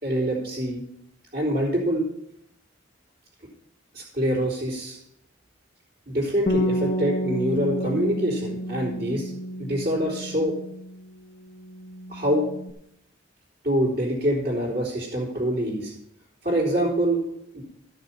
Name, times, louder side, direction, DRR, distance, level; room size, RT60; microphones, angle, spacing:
voice 1, 0.0-0.8 1.3-2.0 3.9-5.0 6.1-9.3 9.6-10.5 12.1-12.4 13.6-15.9 16.4-17.2 17.5-17.6, equal, 45° right, -9 dB, 3.7 m, -25 dB
Bass guitar, 6.5-11.2 11.4-12.7, equal, 45° left, 1.1 m, -30 dB
13.5 x 6.6 x 5.9 m, 0.76 s
head